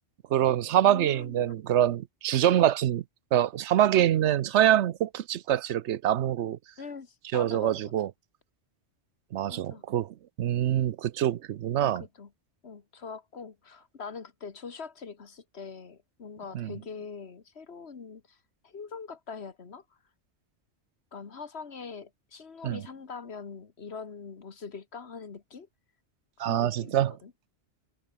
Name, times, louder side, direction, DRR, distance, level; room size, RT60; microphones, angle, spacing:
voice 1, 0.3-3.0 3.3-6.6 7.3-8.1 9.3-12.0 16.5-16.7 22.6-22.8 26.4-27.1, right 11 dB, 80° right, 1.0 m, -25 dB
voice 2, 0.8-1.5 6.8-7.9 9.4-9.8 11.8-12.3 12.6-20.0 21.1-25.7 26.4-27.3, left 5 dB, 65° left, 1.8 m, -43 dB
omnidirectional pair, 1.2 m